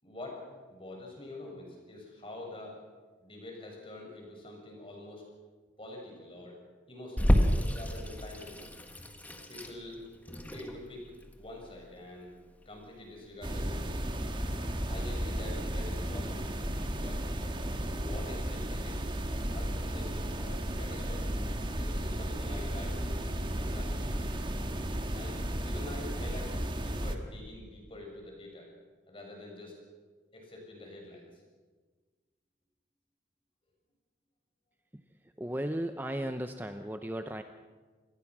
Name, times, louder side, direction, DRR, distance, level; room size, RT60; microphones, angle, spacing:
voice 1, 0.0-0.4 0.7-2.8 3.2-5.2 5.8-6.5 6.9-7.4 7.7-8.7 9.5-10.0 10.5-11.0 11.4-12.3 12.6-14.0 14.9-16.5 16.9-17.2 17.9-19.0 19.5-21.4 21.8-23.3 23.6-24.5 25.1-28.7 29.1-29.8 30.3-31.3, left 2 dB, 30° left, 1 dB, 6.4 m, -46 dB
Water tap faucet / Sink (filling or washing), 7.2-16.2, equal, 10° left, 1.6 m, -32 dB
sound 1, 13.4-27.2, right 1 dB, 25° right, 1.6 m, -34 dB
voice 2, 35.4-37.4, right 1 dB, 10° right, 7 dB, 0.7 m, -35 dB
27.0 x 20.0 x 6.1 m, 1.4 s
head